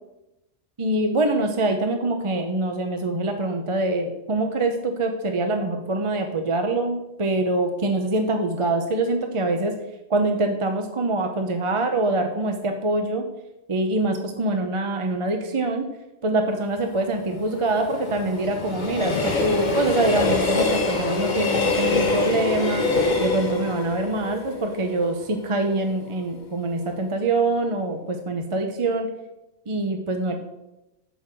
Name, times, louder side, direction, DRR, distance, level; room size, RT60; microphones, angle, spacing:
voice 1, 0.8-9.7 10.1-13.2 13.7-15.9 16.2-22.8 23.2-29.1 29.7-30.4, right 2 dB, 30° right, 5 dB, 0.6 m, -24 dB
Train, 16.7-25.7 26.1-26.2, left 3 dB, 35° left, 1.1 m, -25 dB
6.7 x 5.7 x 7.3 m, 0.94 s
omnidirectional pair, 1.4 m